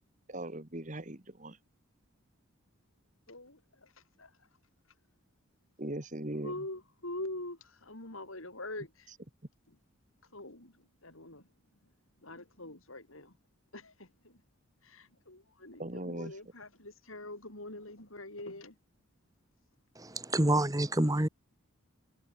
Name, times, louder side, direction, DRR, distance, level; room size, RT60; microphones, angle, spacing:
voice 1, 0.3-1.6 5.8-6.5 15.8-16.3, right 1 dB, 35° right, 1.8 m, -39 dB
voice 2, 3.3-3.9 4.2-4.3 6.4-9.1 10.3-10.7 11.0-11.4 12.2-13.3 13.7-14.1 14.8-18.7, left 1 dB, 70° left, 7.6 m, -44 dB
voice 3, 20.0-21.3, right 1 dB, 15° right, 1.3 m, -27 dB
head